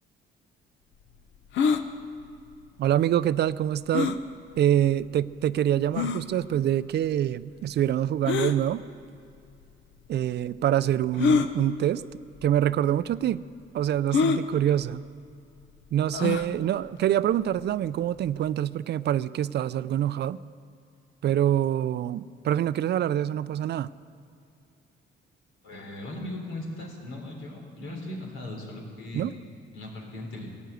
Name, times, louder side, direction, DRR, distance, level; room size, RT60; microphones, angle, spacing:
sound 1, 1.5-1.8 3.9-4.2 5.0-5.1 6.0-6.2 8.2-8.6 9.6-9.7 11.2-11.5 12.4-12.6 12.8-12.9 14.1-14.4 16.1-16.5, left 6 dB, 70° left, 0.8 m, -24 dB
voice 1, 2.8-4.1 4.6-8.8 10.1-12.0 12.4-13.4 13.7-15.0 15.9-20.4 21.2-23.9 29.1-29.3, right 11 dB, 60° right, 17 dB, 0.4 m, -25 dB
voice 2, 25.6-29.3 29.7-30.5, left 1 dB, 85° left, 0 dB, 3.5 m, -38 dB
15.5 x 9.0 x 8.1 m, 2.5 s
cardioid pair, 90°, 20 cm